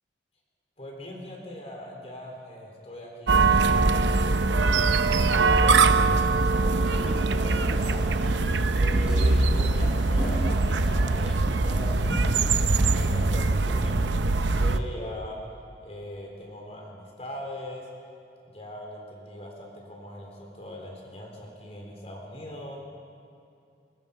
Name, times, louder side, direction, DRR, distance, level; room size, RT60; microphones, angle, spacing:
voice 1, 0.8-6.3 6.6-8.0 8.7-15.4 15.8-17.8 18.4-22.8, left 1 dB, 35° left, -1 dB, 4.1 m, -40 dB
sound 1, 3.3-14.8, right 3 dB, 90° right, 0.8 m, -22 dB
sound 2, 5.7-13.6, equal, 5° right, 4.6 m, -40 dB
23.0 x 21.0 x 5.5 m, 2.5 s
head